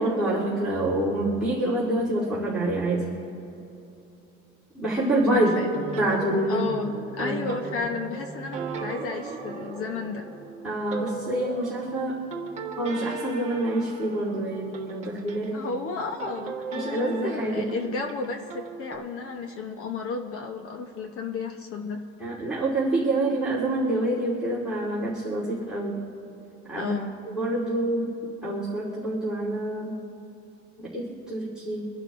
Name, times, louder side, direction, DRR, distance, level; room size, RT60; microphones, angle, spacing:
voice 1, 0.0-3.0 4.7-5.5 6.0-6.6 7.2-7.9 10.6-12.2 12.8-15.6 16.7-17.6 22.2-26.0 26.7-26.9 27.3-28.1 28.4-30.0 30.8-31.8, right 1 dB, ahead, -9 dB, 3.2 m, -27 dB
sound 1, 4.9-15.5 16.2-19.0, right 4 dB, 20° right, 1.4 m, -37 dB
voice 2, 5.3-5.7 6.5-10.3 15.5-22.0 26.8-27.2, left 4 dB, 40° left, 4 dB, 0.9 m, -33 dB
26.5 x 11.5 x 2.5 m, 2.9 s
cardioid pair, 165°, 33 cm